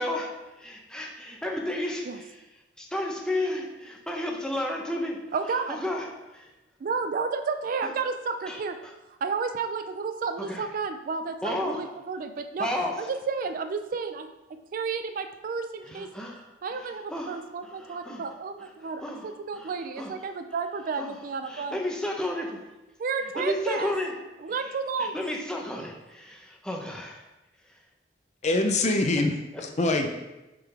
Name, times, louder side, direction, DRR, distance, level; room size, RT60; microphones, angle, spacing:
voice 1, 0.0-2.4 2.8-5.2 5.7-6.1 6.3-6.5 7.8-7.9 8.5-8.9 10.4-10.7 11.4-11.8 12.6-13.1 15.8-16.4 16.7-18.3 18.6-20.3 21.0-21.2 21.4-22.6 23.3-24.1 24.6-24.7 25.0-27.2 28.6-28.7 29.5-29.6, left 1 dB, 5° left, 0 dB, 0.7 m, -33 dB
voice 2, 5.3-5.8 6.8-8.8 9.2-12.7 13.0-14.3 14.7-16.1 16.6-21.8 23.0-23.9 24.4-25.2, right 5 dB, 45° right, 8 dB, 0.3 m, -31 dB
voice 3, 28.4-30.1, left 2 dB, 40° left, 4 dB, 0.6 m, -24 dB
7.9 x 3.8 x 3.4 m, 1.0 s
head